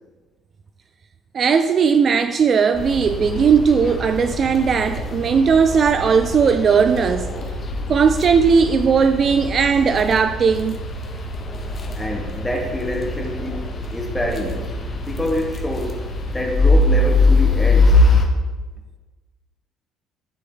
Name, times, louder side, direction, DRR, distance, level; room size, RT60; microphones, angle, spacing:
voice 1, 1.3-7.3 7.9-10.8, right 6 dB, 35° right, 0.3 m, -17 dB
sound 1, 2.7-18.3, left 2 dB, 30° left, 1.0 m, -22 dB
voice 2, 11.9-16.0 16.3-18.0, left 1 dB, 10° left, 1.3 m, -27 dB
11.0 x 3.8 x 3.9 m
cardioid pair, 130°, 0 cm